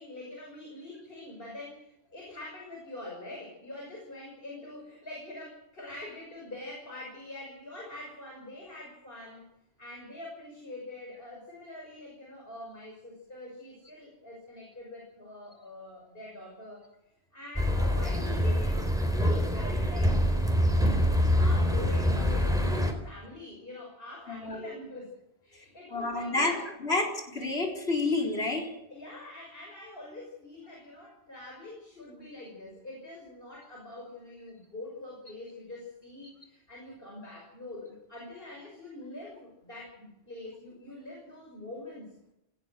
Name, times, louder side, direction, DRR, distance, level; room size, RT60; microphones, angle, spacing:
voice 1, 0.0-9.4 9.8-16.9 17.3-25.1 25.4-26.6 28.9-42.1, left 2 dB, 60° left, -1 dB, 6.5 m, -44 dB
sound 1, 17.6-22.9, equal, 5° right, 4.0 m, -25 dB
voice 2, 24.3-24.7 25.9-26.5 26.8-28.7, left 2 dB, 75° left, 1 dB, 4.4 m, -29 dB
19.0 x 17.0 x 8.0 m, 0.84 s
omnidirectional pair, 1.1 m